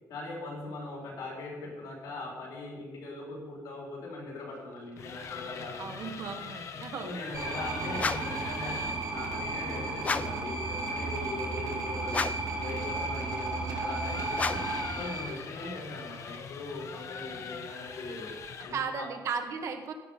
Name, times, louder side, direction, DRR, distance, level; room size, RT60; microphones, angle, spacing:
voice 1, 0.1-6.1 7.0-12.3 12.6-14.6 15.0-18.3 18.6-19.1, left 2 dB, 80° left, -2 dB, 5.0 m, -40 dB
sound 1, 4.8-9.1 11.7-18.9, left 6 dB, 50° left, 0.9 m, -43 dB
voice 2, 5.8-7.2 18.7-19.9, right 6 dB, 55° right, 5 dB, 1.4 m, -35 dB
sound 2, 7.3-15.2, right 3 dB, 70° right, 4.0 m, -34 dB
sound 3, 8.0-8.4 10.0-10.5 12.1-12.6 14.3-14.8, left 4 dB, 20° left, 0.4 m, -32 dB
16.0 x 7.0 x 5.5 m, 1.3 s
cardioid pair, 155°, 7 cm